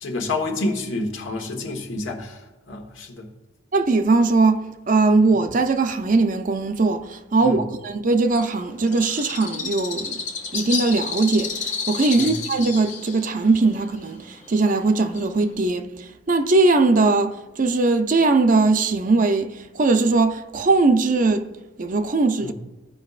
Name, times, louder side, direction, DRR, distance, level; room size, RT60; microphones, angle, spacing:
voice 1, 0.0-3.3 7.4-7.6 12.2-12.4 22.4-22.5, left 2 dB, 85° left, 1.3 m, -29 dB
voice 2, 3.7-10.2 10.5-15.9 16.3-21.5 21.8-22.5, right 3 dB, 45° right, 0.5 m, -20 dB
Bird, 8.3-15.5, left 4 dB, 35° left, 1.3 m, -31 dB
15.5 x 5.3 x 2.4 m
head